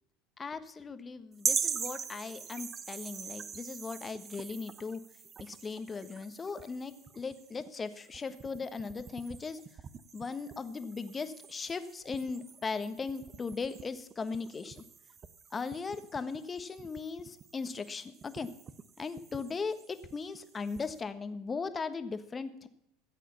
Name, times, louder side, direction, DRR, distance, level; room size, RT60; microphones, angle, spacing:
voice 1, 0.4-5.0 5.4-9.6 10.1-14.8 15.5-18.5 19.0-22.7, left 4 dB, 25° left, 11 dB, 1.3 m, -38 dB
sound 1, 1.4-21.0, right 6 dB, 35° right, 0.9 m, -42 dB
15.0 x 8.2 x 7.0 m, 0.81 s
hypercardioid pair, 85°, 0 cm